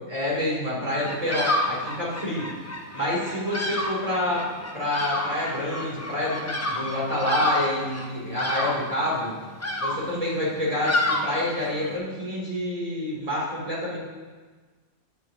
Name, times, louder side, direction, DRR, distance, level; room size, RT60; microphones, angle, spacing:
voice 1, 0.1-2.5 2.9-9.3 9.8-14.0, left 1 dB, 30° right, -6 dB, 3.5 m, -27 dB
Bird vocalization bird call bird song, 1.0-12.0, left 1 dB, 15° left, 0.6 m, -30 dB
12.5 x 9.4 x 3.0 m, 1.4 s
omnidirectional pair, 1.2 m